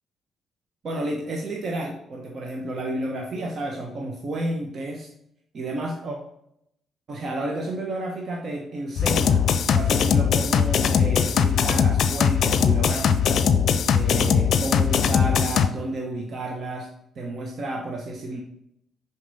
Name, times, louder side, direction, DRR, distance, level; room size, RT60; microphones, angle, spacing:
voice 1, 0.8-5.1 5.5-6.2 7.1-13.4 13.9-16.9 17.1-18.4, right 1 dB, 55° right, 0 dB, 1.1 m, -31 dB
sound 1, 9.0-15.7, left 7 dB, 65° left, 0.5 m, -20 dB
6.1 x 4.4 x 4.1 m, 0.74 s
supercardioid pair, 55°, 0 cm